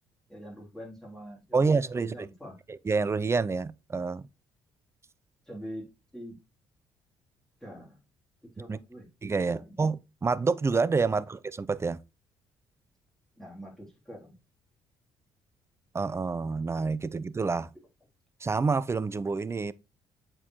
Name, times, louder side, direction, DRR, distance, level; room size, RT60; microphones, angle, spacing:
voice 1, 0.3-1.6 1.9-2.6 5.5-6.4 7.6-8.0 8.4-9.1 9.5-9.8 11.1-11.2 13.4-14.4, equal, 5° left, 3.2 m, -44 dB
voice 2, 1.5-2.3 2.7-4.3 8.7-8.8 9.2-12.0 15.9-17.7 18.4-19.7, right 4 dB, 25° right, 0.5 m, -28 dB
7.4 x 4.4 x 3.0 m
hypercardioid pair, 50°, 11 cm